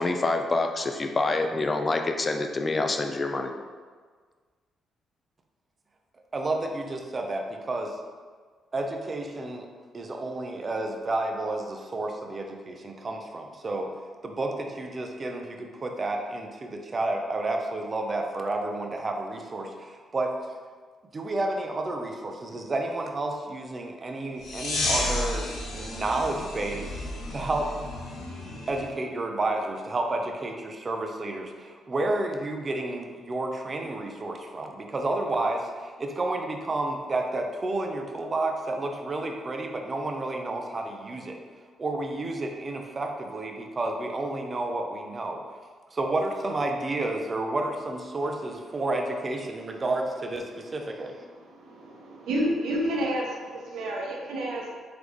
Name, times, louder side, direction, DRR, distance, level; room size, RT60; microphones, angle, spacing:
voice 1, 0.0-3.5, left 2 dB, 35° left, 5 dB, 0.4 m, -26 dB
voice 2, 6.3-7.9 8.7-9.7 9.9-13.9 14.2-20.3 21.1-27.7 28.7-41.4 41.8-45.4 45.9-51.1, right 2 dB, 35° right, 3 dB, 0.5 m, -31 dB
sound 1, 24.4-28.9, left 1 dB, 80° left, 0.7 m, -32 dB
voice 3, 51.4-54.7, right 1 dB, 85° right, -2 dB, 0.8 m, -30 dB
3.9 x 3.4 x 3.1 m, 1.5 s
cardioid pair, 80°, 0 cm